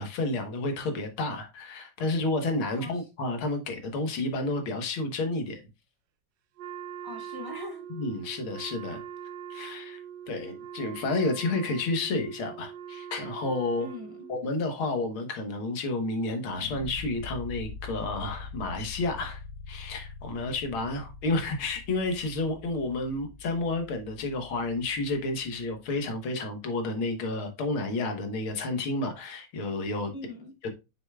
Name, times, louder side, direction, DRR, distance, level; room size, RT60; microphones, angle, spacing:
voice 1, 0.0-5.6 7.9-9.0 9.5-10.0 10.3-13.9 14.3-19.4 19.7-30.1 30.6-30.7, left 2 dB, 85° left, 2.2 m, -30 dB
voice 2, 2.7-3.1 7.0-7.8 13.8-14.3 30.1-30.5, left 1 dB, 15° right, 0.9 m, -41 dB
Wind instrument woodwind instrument, 6.6-14.5, right 9 dB, 65° right, 1.3 m, -42 dB
sound 1, 16.5-25.5, left 4 dB, 55° left, 2.1 m, -44 dB
7.1 x 6.5 x 2.3 m
omnidirectional pair, 2.2 m